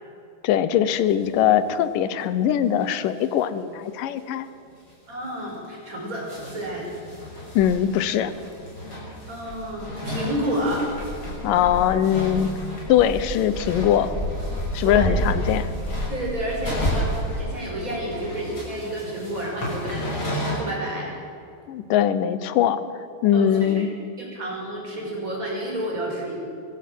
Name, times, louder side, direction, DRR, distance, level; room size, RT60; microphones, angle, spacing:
voice 1, 0.4-4.5 7.6-8.3 11.4-12.5 12.9-14.2 14.7-15.7 21.7-22.8 23.2-23.9, left 10 dB, 75° left, 13 dB, 2.5 m, -21 dB
sound 1, 0.9-1.4 1.7-1.8 2.0-2.1 2.5-2.6 2.8-3.4 3.7-3.8 4.2-4.3 4.8-4.9 5.5-20.6, left 1 dB, 35° left, 7.2 m, -35 dB
voice 2, 5.1-6.9 9.3-10.9 14.8-15.1 16.1-21.1 23.3-23.8 24.2-26.3, right 1 dB, 20° right, -2 dB, 6.0 m, -30 dB
Dog, 7.6-7.7 8.5-8.6 9.5-17.4, equal, 15° left, 4.3 m, -30 dB
23.5 x 16.0 x 7.8 m, 2.6 s
omnidirectional pair, 4.0 m